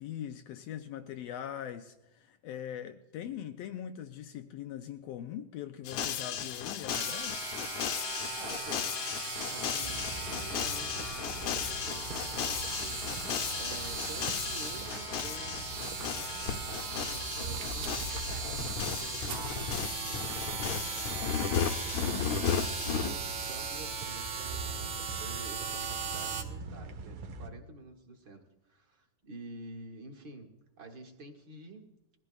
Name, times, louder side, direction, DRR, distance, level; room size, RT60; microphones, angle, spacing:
voice 1, 0.0-7.5, left 10 dB, 90° left, 7 dB, 1.4 m, -41 dB
sound 1, 5.8-23.1, left 8 dB, 70° left, 1.8 m, -35 dB
sound 2, 6.9-26.4, right 6 dB, 70° right, 2.7 m, -38 dB
voice 2, 8.4-13.3 13.6-16.3 16.7-21.3 21.9-31.9, right 3 dB, 45° right, 1 dB, 1.7 m, -49 dB
sound 3, 9.8-27.5, right 2 dB, 90° right, 2.7 m, -43 dB
21.5 x 14.0 x 2.4 m, 0.96 s
omnidirectional pair, 3.6 m